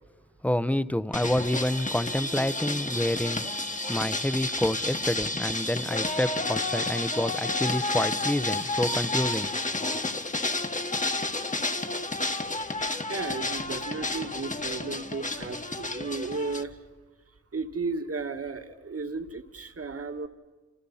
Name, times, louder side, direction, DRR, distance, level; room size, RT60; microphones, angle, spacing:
voice 1, 0.4-3.4 3.9-9.5, left 1 dB, 5° left, 14 dB, 0.9 m, -28 dB
sound 1, 1.1-16.6, left 2 dB, 25° left, 1.6 m, -31 dB
voice 2, 12.7-16.8 17.5-20.3, right 4 dB, 50° right, 7 dB, 2.1 m, -34 dB
30.0 x 28.0 x 5.7 m, 1.3 s
wide cardioid pair, 75°, 30 cm